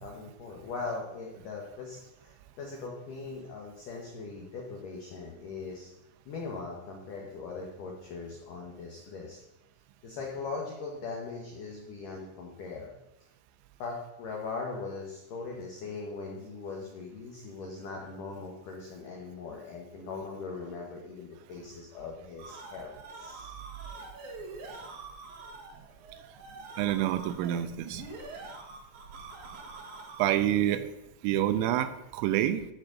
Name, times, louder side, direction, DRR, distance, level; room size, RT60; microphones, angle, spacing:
voice 1, 0.0-5.9 6.3-9.4 10.0-12.9 13.8-23.5, left 4 dB, 80° left, -1 dB, 1.9 m, -40 dB
sound 1, 22.3-30.6, right 3 dB, 65° right, 2.0 m, -45 dB
voice 2, 26.8-28.0 30.2-30.9 31.2-32.7, right 12 dB, 85° right, 11 dB, 3.0 m, -27 dB
12.5 x 4.5 x 6.3 m, 0.93 s
omnidirectional pair, 5.7 m